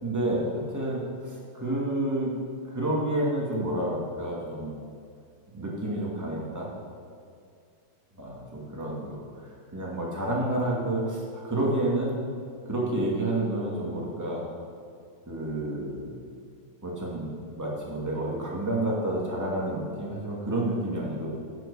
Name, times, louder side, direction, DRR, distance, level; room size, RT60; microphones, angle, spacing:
voice 1, 0.0-2.3 2.7-4.8 5.5-6.7 8.2-12.2 12.6-14.4 15.3-16.1 16.8-21.3, right 1 dB, 10° right, -4 dB, 1.1 m, -29 dB
9.4 x 7.7 x 6.9 m, 2.3 s
omnidirectional pair, 4.1 m